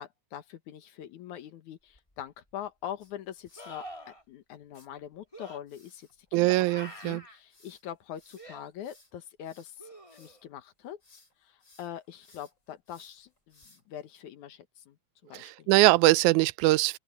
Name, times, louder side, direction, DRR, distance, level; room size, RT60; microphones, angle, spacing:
voice 1, 0.0-6.7 7.0-15.0 15.2-15.7, left 10 dB, 70° left, 2.6 m, -43 dB
sound 1, 2.0-2.1 3.6-4.2 5.3-5.6 6.6-7.4 8.4-8.6 9.8-10.5 13.6-13.7, equal, 10° left, 2.6 m, -46 dB
sound 2, 3.0-3.8 4.7-4.9 5.7-10.5 10.8-11.3 11.6-14.0, left 2 dB, 35° left, 8.5 m, -61 dB
voice 2, 6.3-7.2 15.4-17.0, right 19 dB, 80° right, 1.9 m, -22 dB
open air
omnidirectional pair, 3.6 m